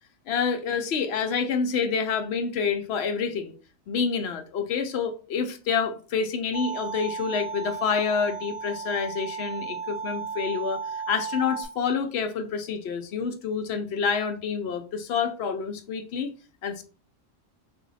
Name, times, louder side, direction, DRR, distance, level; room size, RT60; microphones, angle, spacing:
voice 1, 0.3-3.5 3.9-16.3 16.6-16.8, left 6 dB, 65° left, 0.8 m, -28 dB
sound 1, 6.5-11.6, right 6 dB, 30° right, 1.4 m, -34 dB
3.4 x 3.0 x 4.0 m
omnidirectional pair, 1.3 m